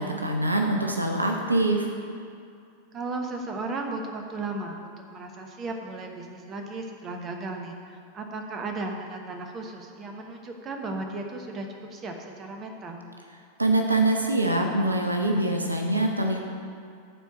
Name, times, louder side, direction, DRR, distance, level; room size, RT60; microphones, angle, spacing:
voice 1, 0.0-1.9 13.6-16.4, right 2 dB, 80° right, 3 dB, 0.7 m, -24 dB
voice 2, 2.9-13.0, right 3 dB, 30° right, 3 dB, 1.0 m, -35 dB
10.0 x 4.5 x 6.2 m, 2.4 s
figure-of-eight pair, 90°, 0 cm